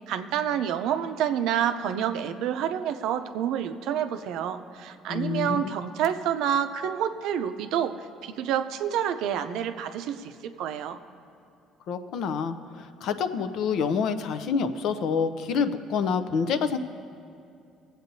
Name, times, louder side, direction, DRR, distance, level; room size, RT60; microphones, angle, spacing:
voice 1, 0.1-7.9 8.2-11.0, right 9 dB, 75° right, 9 dB, 0.5 m, -28 dB
voice 2, 5.1-5.6 11.9-16.8, left 6 dB, 65° left, 10 dB, 0.5 m, -27 dB
23.5 x 8.0 x 2.7 m, 2.5 s
cardioid pair, 115°, 0 cm